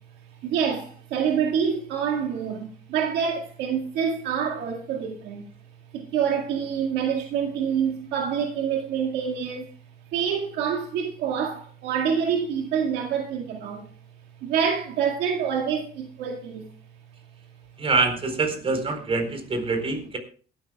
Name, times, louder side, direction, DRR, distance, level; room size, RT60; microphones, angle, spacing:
voice 1, 0.4-5.5 5.9-9.7 10.1-13.9 14.4-16.7, right 7 dB, 85° right, 2.0 m, -26 dB
voice 2, 17.8-20.2, right 4 dB, 35° right, 4.3 m, -25 dB
22.0 x 12.5 x 2.3 m
cardioid pair, 110°, 17 cm